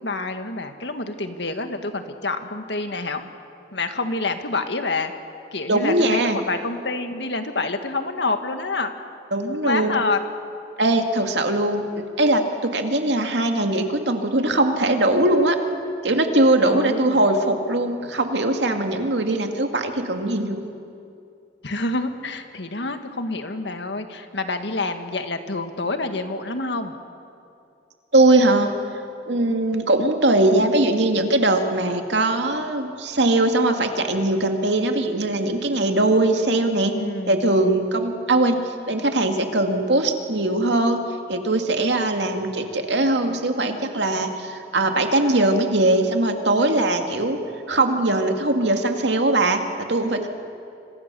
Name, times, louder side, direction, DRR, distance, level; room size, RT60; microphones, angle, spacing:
voice 1, 0.0-3.2 3.7-5.1 5.5-8.9 9.6-10.2 16.7-17.2 21.6-26.9 36.9-37.4, left 3 dB, 70° left, 7 dB, 1.8 m, -27 dB
voice 2, 5.7-6.4 9.3-10.0 10.8-11.9 12.2-15.6 16.0-20.6 28.1-28.7 29.3-37.0 37.3-41.0 41.3-47.4 47.7-49.6 49.9-50.3, right 2 dB, 70° right, 5 dB, 2.2 m, -20 dB
27.0 x 26.0 x 6.9 m, 2.5 s
head